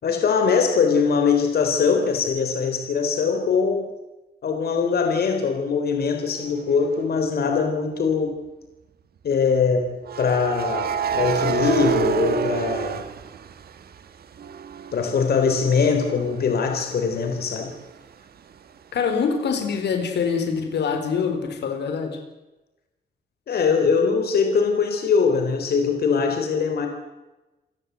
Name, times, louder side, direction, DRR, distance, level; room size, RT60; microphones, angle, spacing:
voice 1, 0.0-3.9 4.4-8.4 9.2-9.9 10.2-13.0 14.9-17.7 23.5-26.9, left 5 dB, 65° left, 5 dB, 3.7 m, -22 dB
sound 1, 6.7-7.0 10.0-13.9 14.3-17.9, right 7 dB, 65° right, 1.7 m, -28 dB
voice 2, 18.9-22.2, left 6 dB, 85° left, 6 dB, 4.2 m, -24 dB
28.5 x 17.0 x 8.1 m, 1.0 s
wide cardioid pair, 160°, 17 cm